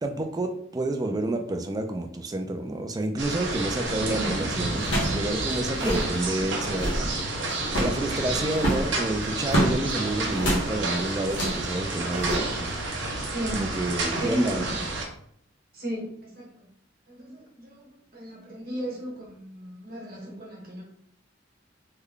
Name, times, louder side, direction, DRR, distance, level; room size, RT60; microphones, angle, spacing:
voice 1, 0.0-7.3 7.7-12.8 13.5-14.9, right 2 dB, 20° right, 5 dB, 0.3 m, -29 dB
sound 1, 3.2-15.1, right 2 dB, 65° right, 0.7 m, -30 dB
sound 2, 3.8-4.1 4.8-5.2 5.5-5.6 5.7-6.1 6.6-7.1 7.7-8.0 8.5-9.8 10.4-10.7 11.3-11.6 12.2-12.4, equal, 70° left, 1.3 m, -26 dB
voice 2, 14.2-14.6 15.8-16.5 17.1-17.7 18.1-20.8, right 1 dB, 50° right, -2 dB, 1.1 m, -34 dB
3.3 x 2.2 x 3.6 m, 0.68 s
head